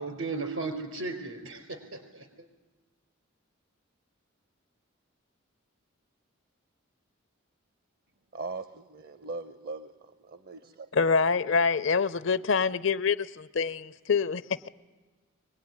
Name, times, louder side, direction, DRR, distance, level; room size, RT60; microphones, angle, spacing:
voice 1, 0.0-2.5, right 3 dB, 80° right, 6 dB, 4.6 m, -36 dB
voice 2, 8.3-10.9, right 3 dB, 50° right, 11 dB, 0.7 m, -40 dB
voice 3, 10.9-14.4, left 5 dB, 65° left, 14 dB, 0.7 m, -26 dB
24.0 x 19.5 x 9.8 m, 1.3 s
head